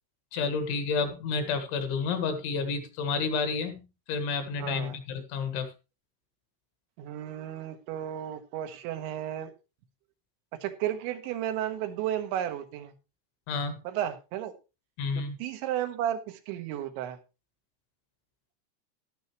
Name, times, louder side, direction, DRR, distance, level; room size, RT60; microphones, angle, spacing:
voice 1, 0.3-3.8 4.1-5.7 13.5-13.8 15.0-15.4, left 5 dB, 75° left, 3.9 m, -30 dB
voice 2, 4.6-5.0 7.0-9.5 10.6-12.9 13.9-14.5 15.2-17.2, right 11 dB, 80° right, 3.4 m, -33 dB
13.0 x 12.0 x 3.0 m
omnidirectional pair, 5.4 m